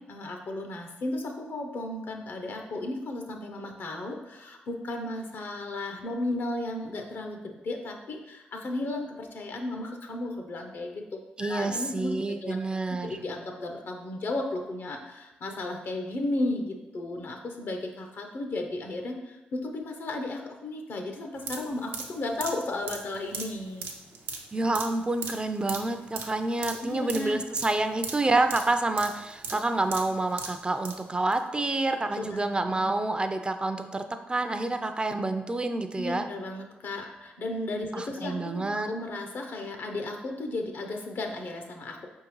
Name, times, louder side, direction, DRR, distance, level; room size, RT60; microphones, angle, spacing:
voice 1, 0.0-23.9 26.7-27.4 32.1-32.8 36.0-42.1, left 2 dB, 65° left, 4 dB, 0.7 m, -34 dB
voice 2, 11.4-13.3 24.5-36.3 37.9-38.9, right 2 dB, 25° right, 8 dB, 0.4 m, -28 dB
sound 1, 21.4-31.0 31.3-31.4, right 4 dB, 80° right, 0.6 m, -38 dB
4.7 x 3.6 x 3.1 m, 1.1 s
supercardioid pair, 50°, 4 cm